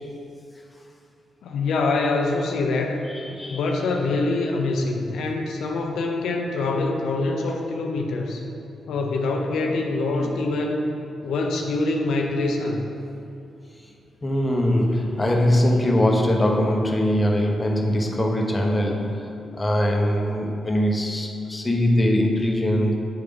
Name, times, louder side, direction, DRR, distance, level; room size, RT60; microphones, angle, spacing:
voice 1, 1.4-3.0 3.5-8.4 8.9-10.9 11.2-12.8, left 3 dB, 80° left, 1 dB, 0.5 m, -24 dB
voice 2, 3.1-3.6 10.2-10.3 14.2-22.9, left 1 dB, 25° left, 1 dB, 0.9 m, -22 dB
8.0 x 3.3 x 5.2 m, 2.7 s
cardioid pair, 65°, 0 cm